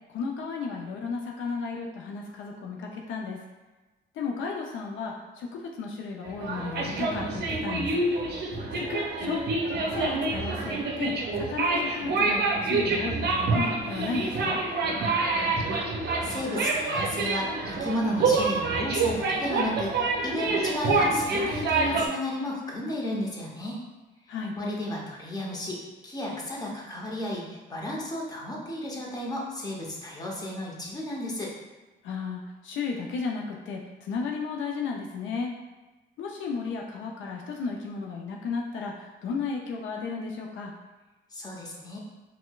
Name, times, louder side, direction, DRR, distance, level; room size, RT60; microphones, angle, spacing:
voice 1, 0.1-3.4 4.2-7.9 8.8-9.4 9.9-14.6 24.3-24.5 32.0-35.5 36.2-40.7, left 4 dB, 75° left, 0 dB, 0.4 m, -34 dB
sound 1, 6.3-22.1, right 3 dB, 55° right, 0.5 m, -27 dB
voice 2, 15.6-23.8 24.6-31.5 41.3-42.0, left 1 dB, 20° left, -3 dB, 0.8 m, -33 dB
4.2 x 2.1 x 2.2 m, 1.2 s
cardioid pair, 90°, 20 cm